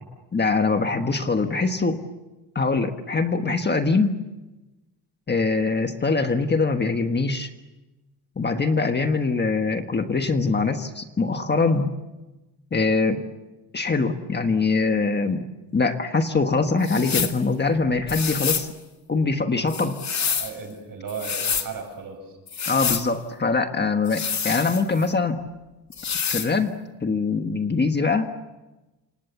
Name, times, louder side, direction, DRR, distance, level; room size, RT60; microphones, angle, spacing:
voice 1, 0.3-2.0 2.5-4.2 5.3-7.5 8.4-11.9 12.7-13.2 13.7-15.4 15.7-18.7 19.1-20.0 22.7-25.4 26.3-28.3, left 4 dB, 25° left, 6 dB, 1.5 m, -23 dB
sound 1, 16.8-17.4 18.1-18.7 19.7-20.5 21.1-21.7 22.5-23.1 24.1-25.1 25.9-26.5, left 6 dB, 40° left, 2.2 m, -27 dB
voice 2, 20.2-22.4, right 5 dB, 55° right, 5 dB, 7.8 m, -36 dB
29.0 x 26.5 x 7.2 m, 1.1 s
wide cardioid pair, 160°, 40 cm